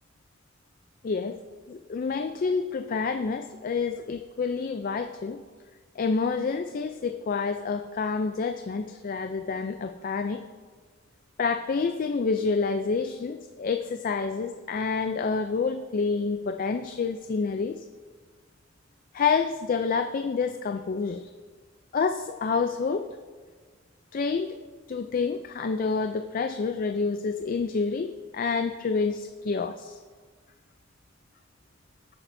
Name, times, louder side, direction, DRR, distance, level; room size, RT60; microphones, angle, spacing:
voice 1, 1.0-1.4 1.7-5.4 6.0-10.4 11.4-17.9 19.1-21.3 21.9-23.1 24.1-24.6 24.9-30.0, left 4 dB, 45° left, 8 dB, 0.4 m, -28 dB
18.0 x 8.7 x 2.6 m, 1.5 s
head